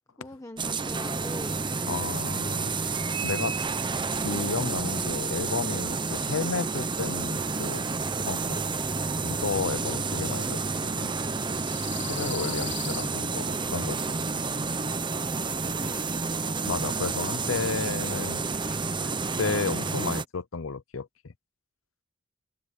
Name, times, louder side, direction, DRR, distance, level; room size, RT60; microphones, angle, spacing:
voice 1, 0.2-1.6 9.9-10.2 11.9-12.7 15.8-16.1, left 1 dB, 15° left, 1.3 m, -43 dB
sound 1, 0.6-20.2, right 4 dB, 25° right, 0.9 m, -30 dB
voice 2, 1.9-3.6 4.1-8.0 8.3-8.6 9.2-11.1 12.0-14.3 16.6-19.1 19.4-21.3, left 4 dB, 75° left, 0.8 m, -33 dB
sound 2, 8.7-17.3, left 11 dB, 60° left, 5.4 m, -47 dB
head